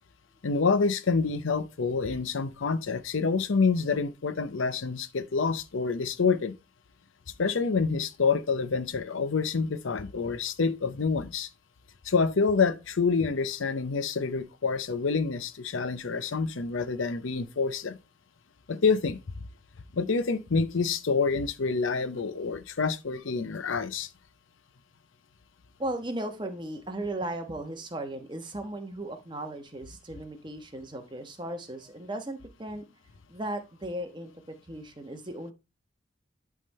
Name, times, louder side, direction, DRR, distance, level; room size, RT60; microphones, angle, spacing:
voice 1, 0.4-6.5 7.4-11.5 12.0-18.0 18.7-19.2 19.9-24.1, left 4 dB, 80° left, 0.7 m, -27 dB
voice 2, 25.8-32.9 33.3-34.3 34.6-35.5, right 1 dB, 25° right, 1.1 m, -36 dB
11.0 x 3.6 x 4.2 m
head